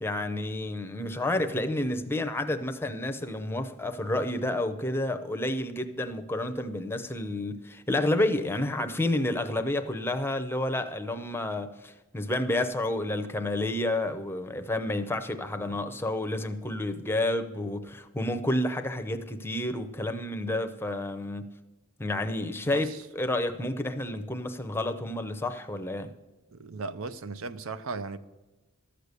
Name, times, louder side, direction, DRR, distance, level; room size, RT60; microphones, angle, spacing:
voice 1, 0.0-21.5 22.0-26.1, left 1 dB, 10° left, 0.6 m, -30 dB
voice 2, 26.5-28.2, right 3 dB, 70° right, 0.6 m, -37 dB
13.5 x 6.7 x 8.2 m
head